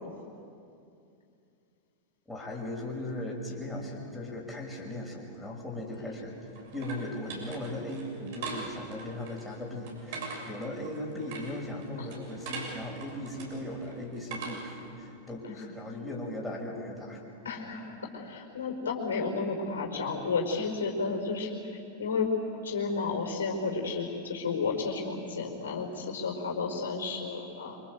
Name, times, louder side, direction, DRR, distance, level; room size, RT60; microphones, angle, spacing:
voice 1, 2.3-6.4 6.7-17.2, left 1 dB, 5° left, -2 dB, 5.9 m, -38 dB
sound 1, 5.9-14.9, right 4 dB, 50° right, 6.9 m, -42 dB
voice 2, 17.4-21.6 22.0-22.3 22.6-27.8, left 4 dB, 65° left, 1 dB, 5.0 m, -32 dB
26.5 x 26.5 x 8.1 m, 2.6 s
figure-of-eight pair, 90°, 0 cm